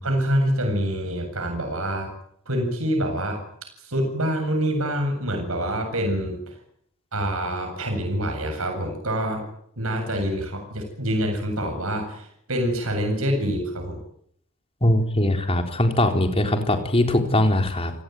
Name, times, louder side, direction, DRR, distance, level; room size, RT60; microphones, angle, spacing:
voice 1, 0.0-2.1 2.5-3.4 3.8-6.5 7.1-9.4 9.8-14.0, equal, 75° right, 4 dB, 7.8 m, -26 dB
voice 2, 14.8-17.9, left 1 dB, 25° left, 4 dB, 4.1 m, -21 dB
29.5 x 18.5 x 9.5 m, 0.70 s
head